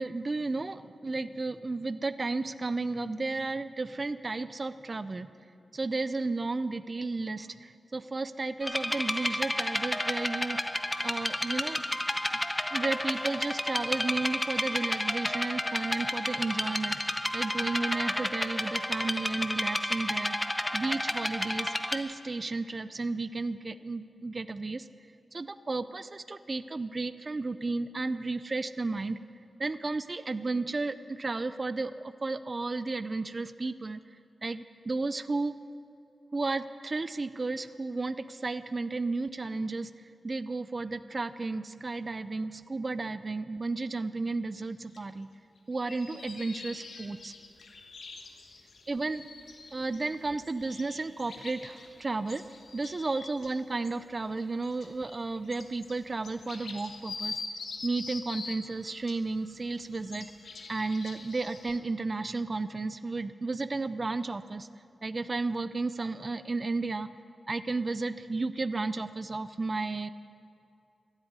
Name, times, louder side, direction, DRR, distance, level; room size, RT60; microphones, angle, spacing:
voice 1, 0.0-5.3 5.7-10.6 11.0-11.8 12.7-24.9 25.3-29.2 29.6-34.0 34.4-35.5 36.3-45.3 45.7-47.3 48.9-49.2 49.7-52.4 52.7-57.4 57.8-60.3 60.7-64.7 65.0-67.1 67.5-70.1, right 3 dB, 40° right, 13 dB, 0.4 m, -33 dB
sound 1, 8.6-22.0, left 1 dB, 15° left, 0.8 m, -31 dB
sound 2, 44.9-45.0 45.6-53.5 53.8-54.0 54.4-58.6 59.1-61.8, left 4 dB, 80° left, 1.2 m, -44 dB
13.5 x 8.2 x 9.6 m, 2.6 s
cardioid pair, 65°, 0 cm